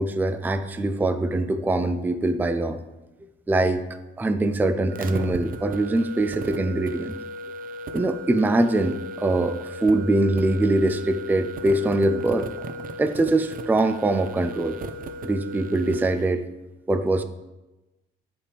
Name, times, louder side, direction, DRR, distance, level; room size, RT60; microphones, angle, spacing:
voice 1, 0.0-2.8 3.5-3.8 4.2-7.2 7.9-12.5 13.0-14.8 15.2-16.5 16.9-17.2, right 2 dB, 10° right, 10 dB, 0.4 m, -23 dB
sound 1, 4.9-16.2, right 1 dB, 45° right, 0.7 m, -36 dB
8.5 x 5.2 x 3.4 m, 1.1 s
cardioid pair, 90°, 20 cm